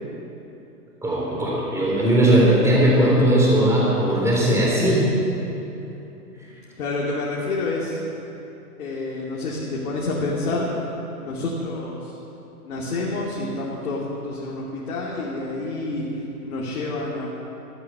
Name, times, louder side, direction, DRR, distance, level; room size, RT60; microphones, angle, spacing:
voice 1, 1.0-5.1, right 1 dB, 5° right, -5 dB, 3.7 m, -18 dB
voice 2, 6.8-8.0 8.8-10.7 11.2-12.1 12.6-16.1 16.4-17.3, left 2 dB, 65° left, -5 dB, 2.8 m, -28 dB
13.5 x 12.0 x 7.2 m, 2.9 s
hypercardioid pair, 125°, 46 cm